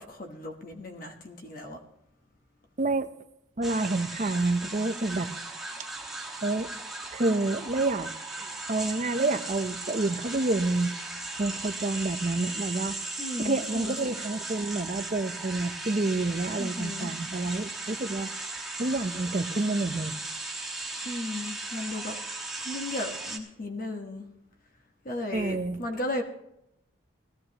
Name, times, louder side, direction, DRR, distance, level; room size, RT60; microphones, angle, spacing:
voice 1, 0.0-1.8 13.2-14.1 16.6-17.1 21.0-22.1 22.6-24.3 25.0-26.2, left 1 dB, 45° left, 4 dB, 1.1 m, -35 dB
voice 2, 2.8-3.1 3.6-5.3 6.4-6.7 7.1-8.1 8.7-10.9 11.4-13.0 13.4-18.3 18.8-20.1 25.3-25.8, right 2 dB, 35° right, 10 dB, 0.6 m, -28 dB
sound 1, 3.6-23.4, right 2 dB, ahead, 1.2 m, -37 dB
17.5 x 13.5 x 2.9 m, 0.81 s
head